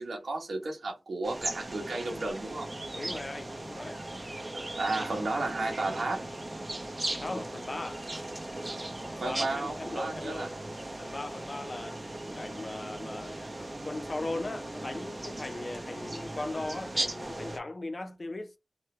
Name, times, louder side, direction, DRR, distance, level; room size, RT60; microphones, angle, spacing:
voice 1, 0.0-2.7 4.5-6.3 9.2-10.5, right 2 dB, 90° right, 1.1 m, -33 dB
sound 1, 1.2-17.6, right 1 dB, 40° right, 0.7 m, -38 dB
voice 2, 2.9-4.0 4.9-5.1 7.2-8.1 9.2-10.6 11.0-13.4 13.8-18.6, left 2 dB, 50° left, 0.6 m, -38 dB
3.1 x 2.1 x 3.2 m
cardioid pair, 50°, 0 cm